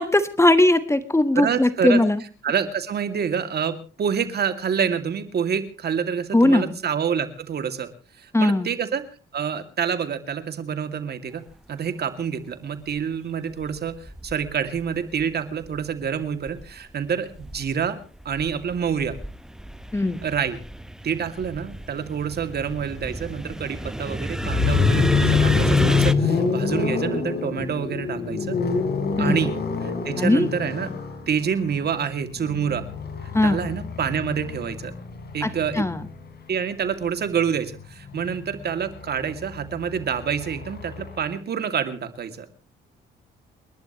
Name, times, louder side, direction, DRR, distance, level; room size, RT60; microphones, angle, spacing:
voice 1, 0.0-2.2 6.3-6.7 8.3-8.7 19.9-20.2 29.2-29.4 30.2-30.5 33.3-33.6 35.4-36.0, left 1 dB, 15° left, 12 dB, 1.4 m, -19 dB
voice 2, 1.3-2.0 2.4-7.9 8.2-9.0 9.3-11.4 11.7-18.0 18.2-19.2 20.2-20.6 21.0-28.6 29.2-29.5 29.8-30.9 31.3-32.8 33.4-34.9 35.3-35.8 36.5-42.5, right 7 dB, 55° right, 9 dB, 2.4 m, -27 dB
sound 1, 12.9-13.0 13.6-15.2 15.6-16.9 17.3-26.1, equal, 5° right, 0.8 m, -30 dB
sound 2, 24.4-36.3 37.6-41.2, left 5 dB, 55° left, 4.1 m, -26 dB
30.0 x 11.5 x 3.0 m, 0.36 s
cardioid pair, 90°, 20 cm